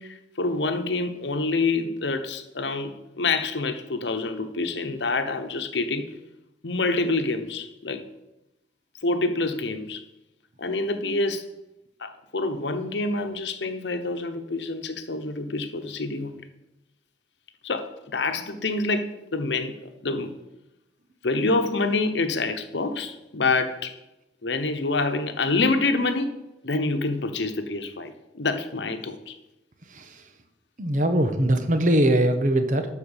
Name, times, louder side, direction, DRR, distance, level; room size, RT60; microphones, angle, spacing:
voice 1, 0.0-6.1 6.6-8.0 9.0-10.0 10.6-11.5 12.0-16.4 17.6-20.4 21.2-23.9 24.4-26.3 26.6-29.3, left 3 dB, 80° left, 1.0 m, -27 dB
voice 2, 30.8-32.9, right 1 dB, 45° right, 1.1 m, -21 dB
12.0 x 4.6 x 7.2 m
head